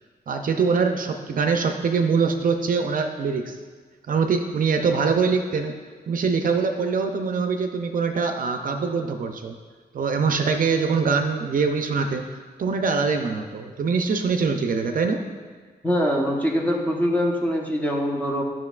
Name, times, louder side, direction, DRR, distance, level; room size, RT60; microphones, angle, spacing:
voice 1, 0.3-3.6 4.1-5.7 6.1-9.5 9.9-12.3 12.6-15.2, right 5 dB, 55° right, 5 dB, 0.5 m, -23 dB
voice 2, 15.8-18.4, equal, 10° left, -1 dB, 0.9 m, -23 dB
10.5 x 6.0 x 2.4 m, 1.5 s
wide cardioid pair, 130°, 17 cm